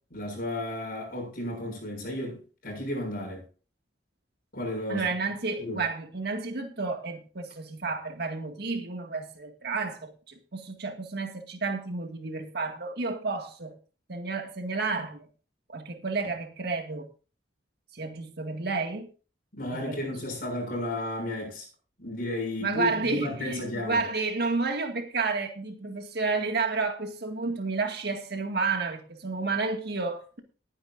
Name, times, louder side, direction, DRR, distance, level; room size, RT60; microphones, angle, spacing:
voice 1, 0.1-3.5 4.5-5.1 5.6-5.8 19.5-21.7 22.0-24.1, left 1 dB, 55° left, 7.0 m, -33 dB
voice 2, 4.9-13.8 14.1-15.3 15.7-17.1 17.9-19.1 19.7-20.1 22.6-30.4, right 4 dB, 60° right, 2.0 m, -31 dB
20.0 x 9.7 x 2.6 m
head